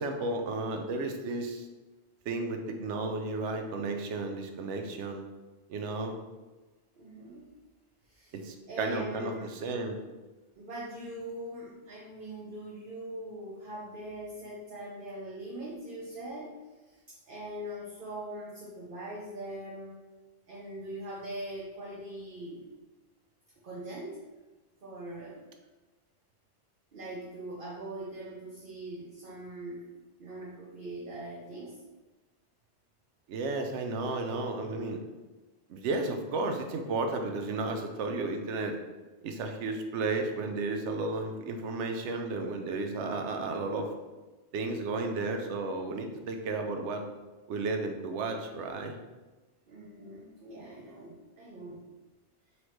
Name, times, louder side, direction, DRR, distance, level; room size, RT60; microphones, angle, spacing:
voice 1, 0.0-1.7 2.3-5.2 5.7-6.2 8.4-10.0 33.3-35.0 35.7-38.8 39.2-43.9 44.5-47.1 47.5-49.0, right 3 dB, 85° right, 5 dB, 0.9 m, -33 dB
voice 2, 6.9-7.5 8.1-8.4 8.7-9.5 10.5-16.5 16.9-20.0 20.5-22.7 23.6-24.2 24.8-25.5 26.9-29.9 30.2-31.8 49.7-51.9, right 1 dB, 55° right, -4 dB, 0.8 m, -42 dB
4.2 x 3.2 x 3.0 m, 1.2 s
omnidirectional pair, 1.2 m